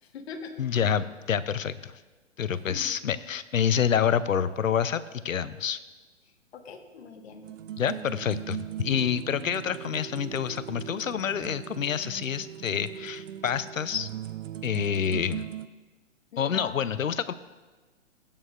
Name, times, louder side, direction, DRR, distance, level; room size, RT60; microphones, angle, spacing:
voice 1, 0.0-0.5 2.5-2.9 6.5-7.5 7.8-8.5 16.3-16.7, left 5 dB, 55° left, 4 dB, 1.5 m, -42 dB
voice 2, 0.6-1.9 2.4-5.8 7.8-14.1 14.6-15.5 16.4-17.3, left 8 dB, 90° left, 15 dB, 0.6 m, -28 dB
sound 1, 7.4-15.7, right 11 dB, 75° right, 0.6 m, -39 dB
17.0 x 8.9 x 2.5 m, 1.3 s
hypercardioid pair, 135°, 39 cm